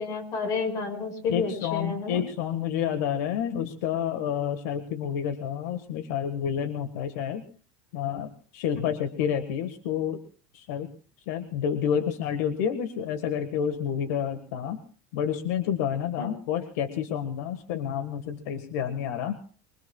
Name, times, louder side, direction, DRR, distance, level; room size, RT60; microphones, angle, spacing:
voice 1, 0.0-2.2 16.2-16.3, left 4 dB, 40° left, 6 dB, 5.5 m, -30 dB
voice 2, 1.3-7.4 7.9-10.2 10.5-10.9 11.3-14.8 15.1-19.4, left 8 dB, 80° left, 8 dB, 1.6 m, -29 dB
24.5 x 24.0 x 2.4 m, 0.39 s
supercardioid pair, 150°, 9 cm